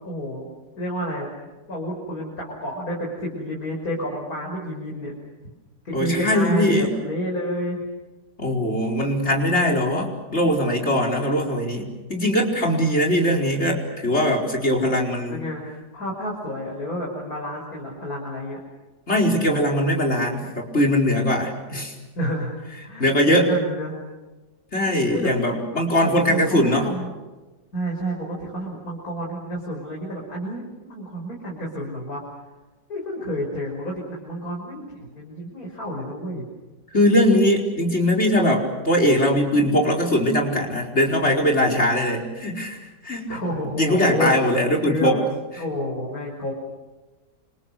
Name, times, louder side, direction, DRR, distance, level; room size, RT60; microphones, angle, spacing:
voice 1, 0.0-0.5 0.8-1.3 1.7-5.1 5.8-7.9 15.3-15.6 15.9-18.6 22.2-22.5 22.8-24.0 25.1-25.3 26.3-27.1 27.7-32.2 32.9-36.5 43.3-44.5 44.8-45.2 45.6-46.5, equal, 60° left, -3 dB, 6.3 m, -29 dB
voice 2, 5.9-7.0 8.4-15.4 19.1-21.9 23.0-23.5 24.7-26.9 36.9-43.4 43.7-45.2, equal, 40° left, 2 dB, 5.1 m, -21 dB
29.5 x 27.5 x 6.7 m, 1.2 s
omnidirectional pair, 1.8 m